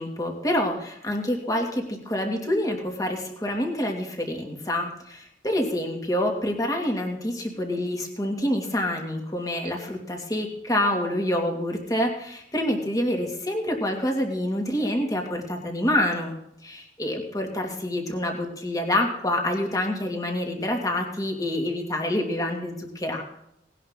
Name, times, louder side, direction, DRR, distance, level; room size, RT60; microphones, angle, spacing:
voice 1, 0.0-16.3 16.6-23.2, left 1 dB, 20° left, 2 dB, 2.6 m, -27 dB
18.5 x 11.0 x 3.9 m, 0.77 s
head